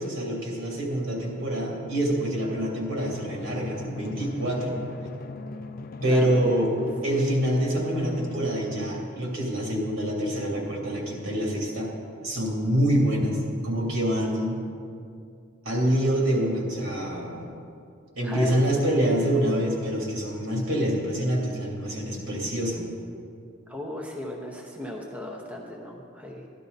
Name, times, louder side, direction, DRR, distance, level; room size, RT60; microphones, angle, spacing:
voice 1, 0.0-4.8 6.0-6.7 7.0-11.9 12.2-14.6 15.6-17.5 18.1-22.8, equal, 65° right, -2 dB, 2.8 m, -26 dB
Drum, 2.9-9.0, left 2 dB, 45° left, 0.4 m, -39 dB
voice 2, 6.1-6.7 18.2-18.6 23.7-26.5, left 1 dB, 5° right, -1 dB, 0.8 m, -36 dB
13.5 x 11.5 x 4.0 m, 2.4 s
head